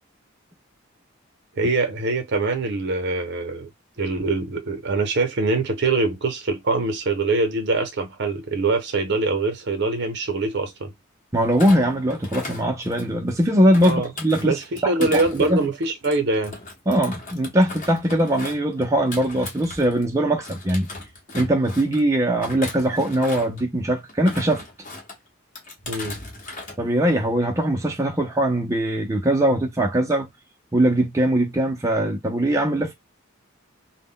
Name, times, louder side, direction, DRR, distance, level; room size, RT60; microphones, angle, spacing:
voice 1, 1.5-3.7 4.0-10.9 13.8-14.1 14.4-16.6 25.9-26.2, right 3 dB, 55° right, 0.6 m, -24 dB
voice 2, 11.3-15.6 16.9-20.9 21.3-24.6 26.8-30.3 30.7-32.9, right 1 dB, 15° right, 0.4 m, -21 dB
Thump thud, 11.5-13.3 13.7-20.1 20.4-22.0 22.4-23.6 24.1-25.2 25.6-26.8 27.1-27.4, left 2 dB, 35° left, 0.8 m, -37 dB
2.1 x 2.0 x 3.6 m
head